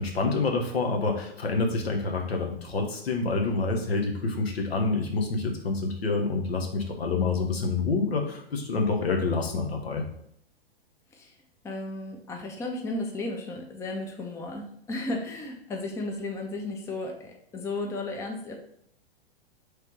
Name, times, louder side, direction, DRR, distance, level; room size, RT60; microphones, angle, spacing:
voice 1, 0.0-10.0, left 3 dB, 75° left, 3 dB, 1.0 m, -27 dB
voice 2, 11.6-18.5, left 2 dB, 10° left, 2 dB, 0.5 m, -34 dB
3.3 x 3.2 x 4.4 m, 0.71 s
figure-of-eight pair, 105°, 31 cm